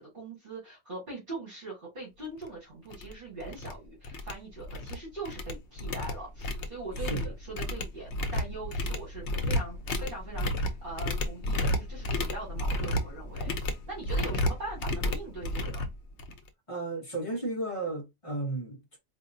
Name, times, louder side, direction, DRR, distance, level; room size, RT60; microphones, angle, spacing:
voice 1, 0.0-15.9, right 2 dB, 45° right, 1.8 m, -41 dB
sound 1, 2.4-2.5 2.9-3.1 3.4-3.7 4.0-5.0 5.3-16.5, left 1 dB, 70° left, 1.0 m, -32 dB
voice 2, 7.0-7.3 16.7-19.0, right 2 dB, 30° left, 0.9 m, -34 dB
4.2 x 2.6 x 2.6 m
omnidirectional pair, 1.2 m